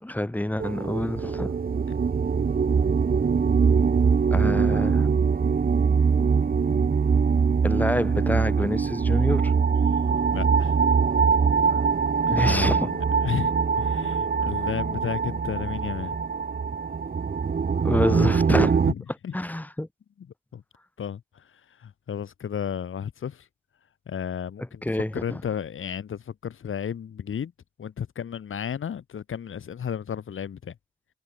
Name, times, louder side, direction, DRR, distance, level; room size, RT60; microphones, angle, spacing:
voice 1, 0.0-1.5 4.3-5.1 7.6-9.5 12.3-12.9 17.8-18.8 19.3-19.9 24.8-25.4, left 1 dB, 10° left, 1.5 m, -27 dB
sound 1, 0.6-18.9, right 5 dB, 45° right, 1.2 m, -23 dB
voice 2, 10.3-10.8 12.3-16.2 18.8-19.4 20.2-20.3 20.5-20.6 21.0-23.5 24.1-27.5 27.8-30.8, left 8 dB, 75° left, 1.8 m, -33 dB
cardioid pair, 85°, 21 cm